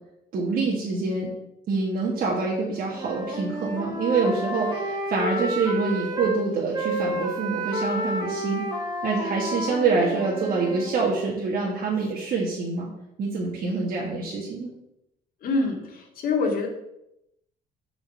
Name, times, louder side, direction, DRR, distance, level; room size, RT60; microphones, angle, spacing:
voice 1, 0.3-1.3 1.7-8.7 9.0-12.9 13.2-14.7, right 4 dB, 60° right, -4 dB, 1.9 m, -26 dB
Wind instrument woodwind instrument, 2.9-6.4 6.7-10.9, right 1 dB, 25° right, 1.8 m, -30 dB
voice 2, 15.4-15.8 16.2-16.7, left 3 dB, 60° left, 1 dB, 2.2 m, -23 dB
6.9 x 5.7 x 5.6 m, 0.84 s
cardioid pair, 110°, 17 cm